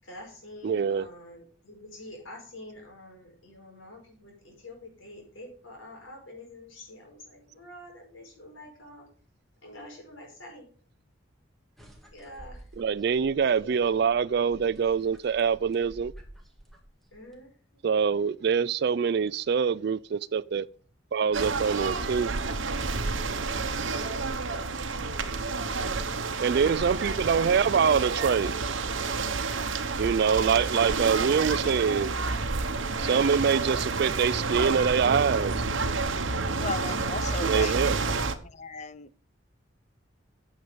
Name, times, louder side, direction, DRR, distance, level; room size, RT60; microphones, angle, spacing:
voice 1, 0.0-9.1 9.6-10.7 12.1-12.7 13.2-13.9 17.1-17.8 26.6-27.6 30.4-31.9, left 1 dB, 75° left, 5.0 m, -46 dB
voice 2, 0.6-1.1 12.8-16.1 17.8-20.7 21.1-22.3 26.4-28.5 30.0-32.1 33.0-35.5 37.4-38.0, right 6 dB, 55° right, 0.3 m, -25 dB
sound 1, 11.8-17.3, right 1 dB, ahead, 1.8 m, -50 dB
sound 2, 21.3-38.3, right 4 dB, 70° right, 1.1 m, -29 dB
voice 3, 36.6-37.7 38.1-38.2 38.4-39.2, left 3 dB, 35° left, 0.5 m, -36 dB
9.7 x 7.1 x 5.2 m
head